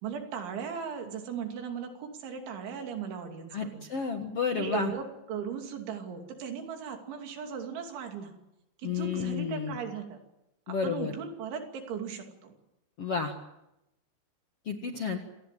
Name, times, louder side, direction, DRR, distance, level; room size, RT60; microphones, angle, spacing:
voice 1, 0.0-3.8 4.5-8.3 8.8-10.2 10.8-12.5, right 7 dB, 80° right, 4 dB, 5.2 m, -37 dB
voice 2, 3.5-4.9 8.8-9.8 10.7-11.1 13.0-13.3 14.6-15.2, left 5 dB, 55° left, 4 dB, 1.7 m, -31 dB
27.0 x 18.5 x 9.1 m, 0.90 s
omnidirectional pair, 5.3 m